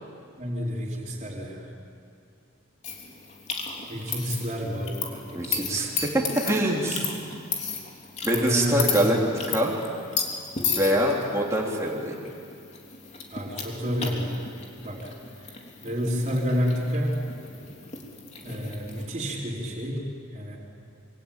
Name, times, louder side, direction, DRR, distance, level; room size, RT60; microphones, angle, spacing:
voice 1, 0.4-1.7 3.9-5.9 8.3-8.8 13.3-14.4 14.8-15.1 15.8-17.2 18.4-20.0 20.3-20.6, equal, 35° right, -7 dB, 4.3 m, -29 dB
sound 1, 2.8-19.1, left 5 dB, 35° left, 3.4 m, -35 dB
voice 2, 5.3-7.1 8.2-9.2 9.5-9.8 10.8-12.2, right 1 dB, 15° right, -3 dB, 3.2 m, -24 dB
26.5 x 24.5 x 9.0 m, 2.5 s
head